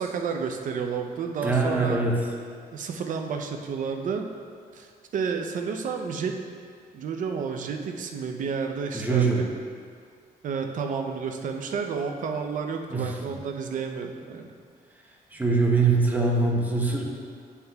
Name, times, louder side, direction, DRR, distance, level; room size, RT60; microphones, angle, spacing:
voice 1, 0.0-2.0 2.7-4.2 4.7-4.9 5.1-6.3 6.9-9.2 10.4-14.5, right 5 dB, 60° right, 4 dB, 0.6 m, -31 dB
voice 2, 1.4-2.2 8.9-9.4 12.9-13.2 15.3-17.0, right 3 dB, 10° right, -1 dB, 0.8 m, -23 dB
9.3 x 5.7 x 2.3 m, 2.1 s
cardioid pair, 150°, 15 cm